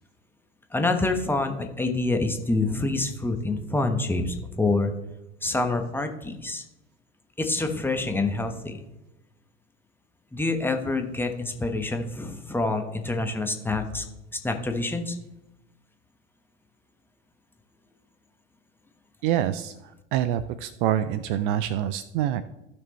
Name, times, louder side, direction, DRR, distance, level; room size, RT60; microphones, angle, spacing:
voice 1, 0.7-4.9 5.4-6.6 7.4-8.8 10.3-14.0 14.3-15.2, left 2 dB, 5° left, 5 dB, 1.2 m, -27 dB
voice 2, 19.2-22.4, right 11 dB, 45° right, 13 dB, 0.5 m, -26 dB
15.5 x 6.2 x 3.2 m, 0.93 s
figure-of-eight pair, 85°, 35 cm